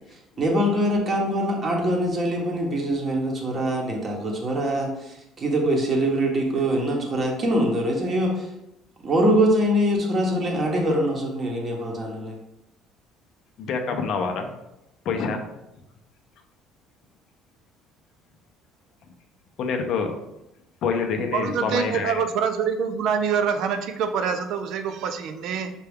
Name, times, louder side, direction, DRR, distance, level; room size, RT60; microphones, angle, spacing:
voice 1, 0.4-8.5 9.0-12.3, equal, 25° right, 0 dB, 0.8 m, -23 dB
voice 2, 13.6-14.5 15.0-15.4 19.6-20.1 20.8-22.2, left 5 dB, 50° left, 4 dB, 0.6 m, -26 dB
voice 3, 21.3-25.7, right 6 dB, 60° right, 8 dB, 0.4 m, -25 dB
5.8 x 2.3 x 3.4 m, 0.88 s
cardioid pair, 150°, 0 cm